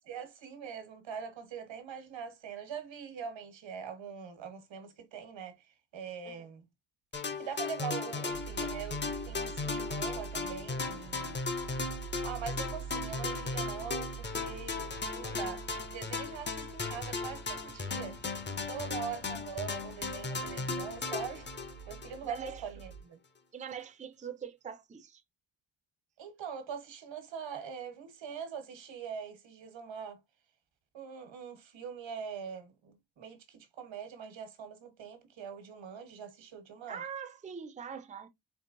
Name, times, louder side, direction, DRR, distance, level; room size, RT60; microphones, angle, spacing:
voice 1, 0.1-6.7 7.4-11.4 12.2-18.2 18.7-21.5 21.9-23.2 26.2-30.2 30.9-37.0, right 7 dB, 85° right, 1.4 m, -43 dB
sound 1, 7.1-22.5, left 4 dB, 25° left, 0.6 m, -36 dB
sound 2, 8.3-23.0, right 8 dB, 80° left, 2.5 m, -47 dB
voice 2, 22.2-22.6 23.5-25.2 36.9-38.3, right 7 dB, 20° right, 0.4 m, -43 dB
4.5 x 3.2 x 2.6 m
wide cardioid pair, 150°, 44 cm